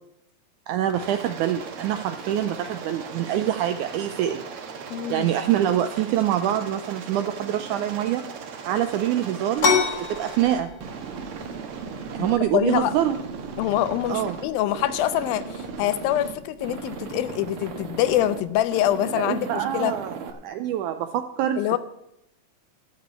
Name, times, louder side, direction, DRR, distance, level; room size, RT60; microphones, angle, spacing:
voice 1, 0.7-4.4 5.1-8.2 8.7-9.7 10.1-10.7 12.1-13.2 14.1-14.4 19.2-21.8, right 11 dB, 90° right, 1.8 m, -25 dB
Aircraft, 0.9-12.4 12.7-14.4 14.7-16.3 16.6-18.4 18.7-20.3, right 5 dB, 65° right, 1.4 m, -37 dB
voice 2, 4.9-5.3 12.2-12.3 12.5-12.9 13.6-19.9 21.6-21.8, left 13 dB, 85° left, 2.5 m, -25 dB
sound 1, 9.6-19.0, left 4 dB, 50° left, 1.0 m, -31 dB
13.0 x 6.1 x 8.6 m
omnidirectional pair, 4.1 m